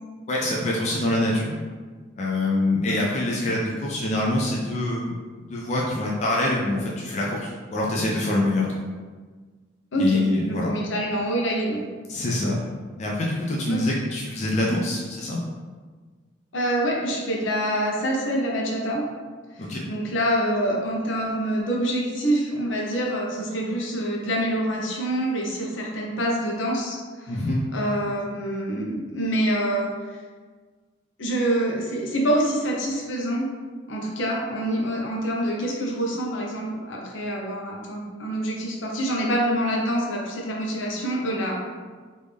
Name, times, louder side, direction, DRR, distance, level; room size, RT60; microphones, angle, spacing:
voice 1, 0.3-1.5 2.1-5.2 5.5-8.7 10.0-10.7 12.1-12.6 13.0-15.4 19.6-19.9 27.3-27.6, left 1 dB, 35° left, -4 dB, 0.4 m, -25 dB
voice 2, 9.9-11.9 13.7-13.8 16.5-19.0 19.6-27.3 27.7-29.9 31.2-33.5 33.9-41.5, right 1 dB, 75° left, -1 dB, 0.7 m, -26 dB
3.5 x 2.6 x 3.2 m, 1.5 s
head